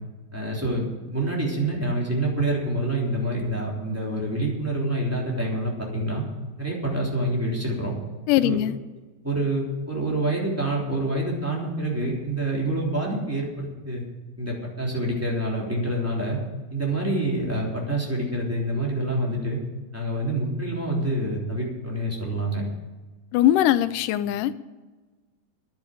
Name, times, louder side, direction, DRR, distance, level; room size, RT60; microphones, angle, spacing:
voice 1, 0.3-6.2 6.6-7.9 8.4-8.6 9.2-14.0 14.4-16.4 16.7-19.6 19.9-22.6, right 1 dB, 5° right, -3 dB, 3.0 m, -27 dB
voice 2, 8.3-8.8 23.3-24.5, left 13 dB, 85° left, 14 dB, 2.2 m, -21 dB
10.5 x 9.1 x 9.1 m, 1.2 s
omnidirectional pair, 3.7 m